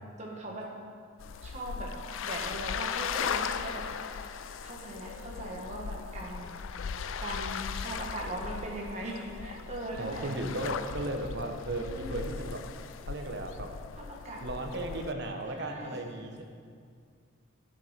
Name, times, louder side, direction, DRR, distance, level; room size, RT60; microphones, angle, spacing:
voice 1, 0.2-0.7 1.4-1.9 2.2-3.8 4.6-6.5 7.2-10.3 11.8-12.3 14.0-14.4 15.5-16.0, right 1 dB, 35° right, -2 dB, 1.6 m, -39 dB
sound 1, 1.2-15.1, left 6 dB, 70° left, 0.4 m, -38 dB
voice 2, 10.0-12.6 13.0-13.8 14.4-16.4, right 1 dB, 55° right, 3 dB, 1.1 m, -35 dB
11.5 x 7.0 x 5.1 m, 2.1 s
head